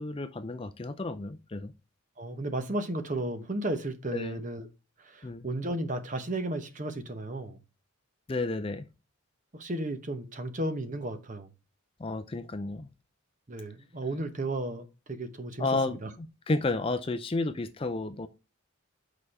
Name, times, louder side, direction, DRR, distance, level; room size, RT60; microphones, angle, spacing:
voice 1, 0.0-1.7 4.1-4.4 5.2-5.5 8.3-8.8 12.0-12.9 15.6-18.3, left 2 dB, 25° left, 0.4 m, -32 dB
voice 2, 2.2-4.7 5.0-7.6 9.5-11.5 13.5-16.1, right 1 dB, 35° right, 0.9 m, -34 dB
6.7 x 5.0 x 4.1 m
head